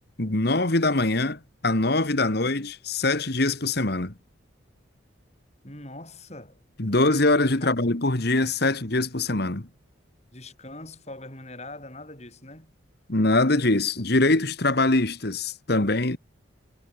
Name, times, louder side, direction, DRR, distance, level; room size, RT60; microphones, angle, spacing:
voice 1, 0.2-4.1 6.8-9.7 13.1-16.2, left 2 dB, 50° left, 1.7 m, -23 dB
voice 2, 5.6-6.6 7.6-7.7 10.3-12.7, left 2 dB, 35° left, 7.3 m, -42 dB
head